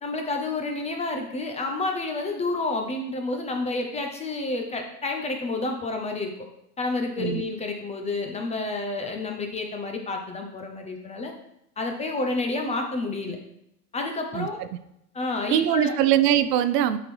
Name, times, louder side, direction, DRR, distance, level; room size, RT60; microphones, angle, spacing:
voice 1, 0.0-6.3 6.8-11.3 11.8-13.4 13.9-14.6 15.1-15.9, left 2 dB, 15° left, 3 dB, 0.5 m, -29 dB
voice 2, 7.2-7.5 14.3-14.5 15.5-17.0, right 11 dB, 70° right, 12 dB, 0.7 m, -22 dB
7.7 x 4.4 x 3.2 m, 0.80 s
hypercardioid pair, 110°, 50 cm